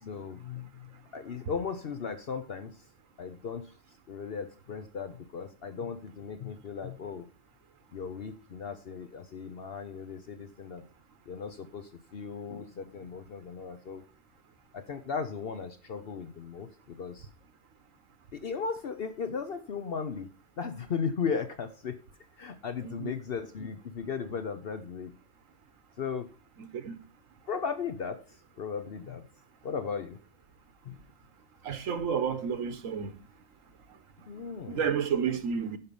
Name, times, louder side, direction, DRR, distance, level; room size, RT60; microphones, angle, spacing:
voice 1, 0.0-2.8 3.2-3.7 4.1-7.3 7.9-10.8 11.3-14.0 14.7-17.3 18.3-20.3 20.6-22.0 22.4-25.1 26.0-26.3 27.5-28.2 28.6-29.3 29.6-30.2 30.8-31.0 34.3-34.9 35.2-35.3, left 6 dB, 55° left, 0.9 m, -36 dB
voice 2, 31.6-33.1 34.7-35.8, right 7 dB, 85° right, 1.4 m, -30 dB
9.7 x 5.7 x 5.3 m
omnidirectional pair, 1.3 m